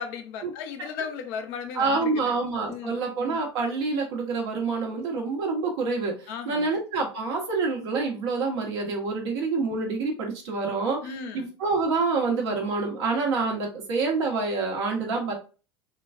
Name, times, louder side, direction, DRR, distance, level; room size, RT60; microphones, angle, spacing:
voice 1, 0.0-2.4 2.7-3.0 6.3-6.7 11.0-11.5, left 6 dB, 60° left, 0.7 m, -36 dB
voice 2, 1.7-11.0 11.3-15.3, right 4 dB, 70° right, 1.1 m, -27 dB
3.8 x 2.3 x 2.5 m
hypercardioid pair, 75°, 14 cm